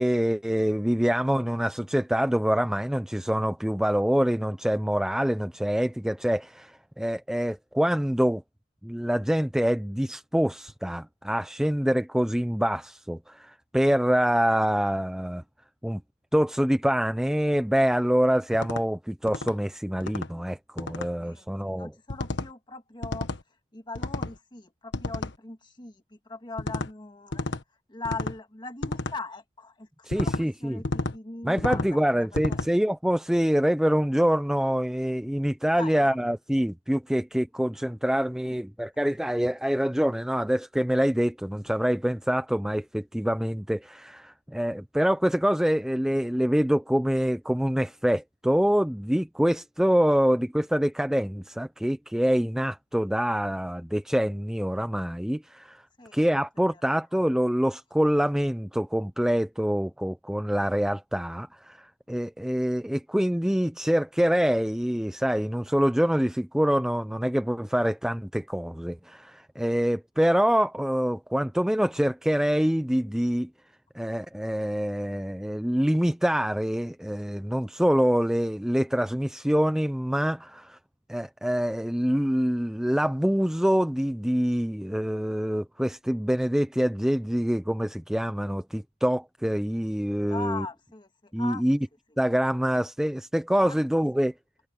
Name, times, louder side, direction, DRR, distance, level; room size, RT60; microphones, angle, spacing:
voice 1, 0.0-8.4 8.8-15.4 15.8-16.0 16.3-21.9 30.0-30.8 31.4-55.8 56.1-73.5 73.9-80.8 81.1-90.7 91.3-91.8 92.2-94.3, equal, 5° right, 0.4 m, -25 dB
sound 1, 18.5-18.8 19.3-19.5 20.0-20.3 20.8-21.1 22.1-22.5 23.0-23.4 23.9-24.4 24.9-25.3 26.6-26.9 27.3-27.6 28.0-28.4 28.8-29.2 30.1-30.4 30.8-31.2 31.6-31.9 32.3-32.7, left 2 dB, 60° left, 1.4 m, -31 dB
voice 2, 21.2-23.3 23.7-25.9 26.3-27.4 27.9-29.9 30.1-31.8 32.1-32.6 35.7-36.1 38.4-38.5 56.0-56.1 90.3-91.6 93.6-93.8, left 3 dB, 20° left, 1.8 m, -40 dB
head